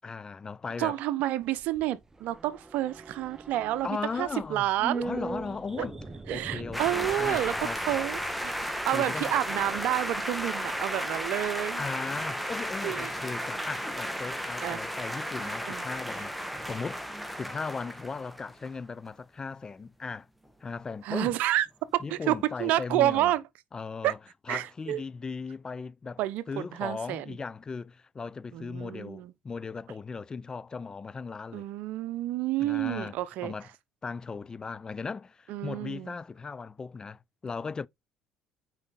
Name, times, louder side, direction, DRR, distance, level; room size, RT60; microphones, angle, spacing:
voice 1, 0.0-1.0 3.8-4.7 5.0-6.0 6.3-7.8 8.8-9.3 11.8-20.3 20.6-21.3 22.0-23.3 23.7-24.2 24.5-26.2 26.5-31.7 32.6-33.7 34.0-37.9, left 4 dB, 25° left, 0.4 m, -37 dB
voice 2, 0.8-3.9 4.2-5.0 5.8-5.9 6.3-7.5 7.9-11.8 12.8-13.1 14.6-14.8 15.7-15.8 21.0-21.7 21.9-23.4 24.0-24.1 24.5-25.0 26.2-27.4 28.5-29.3 31.5-33.5 35.5-36.1, right 14 dB, 70° right, 0.8 m, -29 dB
sound 1, 1.4-11.9 12.1-12.2, right 3 dB, 20° right, 1.1 m, -42 dB
sound 2, 6.7-18.7, equal, ahead, 1.7 m, -34 dB
8.6 x 4.9 x 4.1 m
supercardioid pair, 75°, 3 cm